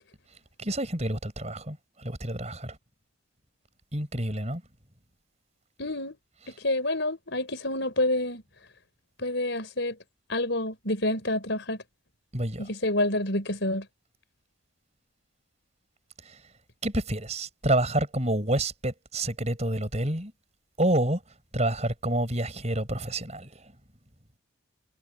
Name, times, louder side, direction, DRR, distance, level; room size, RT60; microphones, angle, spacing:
voice 1, 0.6-2.8 3.9-4.6 6.4-6.5 12.3-12.7 16.2-16.4 16.8-20.3 20.8-21.2 21.5-23.7, right 1 dB, 30° right, 5.7 m, -28 dB
voice 2, 5.8-6.2 6.6-8.4 9.2-9.9 10.3-11.8 12.6-13.8, left 1 dB, 55° left, 5.7 m, -28 dB
head